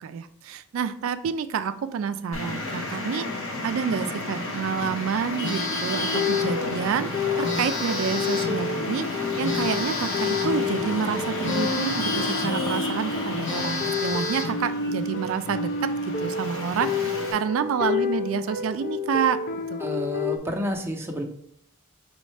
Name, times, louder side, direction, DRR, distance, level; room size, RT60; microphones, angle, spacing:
voice 1, 0.0-19.4 19.7-19.8, right 7 dB, 80° right, 10 dB, 0.3 m, -28 dB
Traffic noise roadway noise, 2.3-17.3, left 2 dB, 80° left, 1.2 m, -32 dB
Telephone, 5.4-6.6 7.4-8.6 9.4-10.6 11.4-12.6 13.0-13.1 13.4-14.6, left 3 dB, 60° left, 1.0 m, -31 dB
sound 1, 5.9-20.4, left 5 dB, 45° left, 0.4 m, -30 dB
voice 2, 19.8-21.2, equal, 10° right, 1 dB, 0.6 m, -29 dB
5.2 x 3.1 x 3.2 m, 0.70 s
head